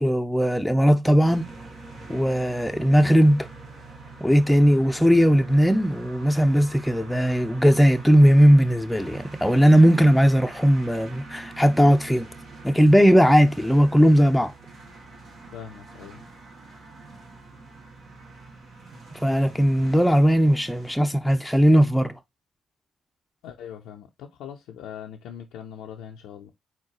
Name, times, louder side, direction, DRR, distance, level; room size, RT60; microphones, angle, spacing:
voice 1, 0.0-1.5 2.1-3.5 4.2-12.3 12.6-14.5 19.2-22.1, equal, 5° left, 0.6 m, -18 dB
sound 1, 1.2-20.9, right 3 dB, 60° right, 2.0 m, -43 dB
voice 2, 15.5-16.2 23.4-26.5, left 9 dB, 75° left, 0.5 m, -41 dB
4.4 x 3.9 x 2.9 m
hypercardioid pair, 45°, 0 cm